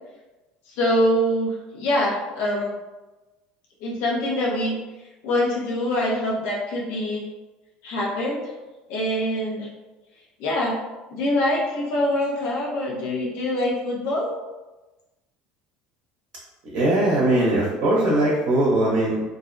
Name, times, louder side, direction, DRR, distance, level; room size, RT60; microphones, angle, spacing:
voice 1, 0.7-2.7 3.8-4.8 5.2-7.2 7.8-8.4 8.9-9.7 10.4-10.8 11.1-14.3, left 1 dB, 70° left, -3 dB, 0.7 m, -24 dB
voice 2, 16.7-19.2, right 1 dB, 65° right, -4 dB, 0.7 m, -20 dB
2.4 x 2.1 x 2.5 m, 1.1 s
hypercardioid pair, 75°, 4 cm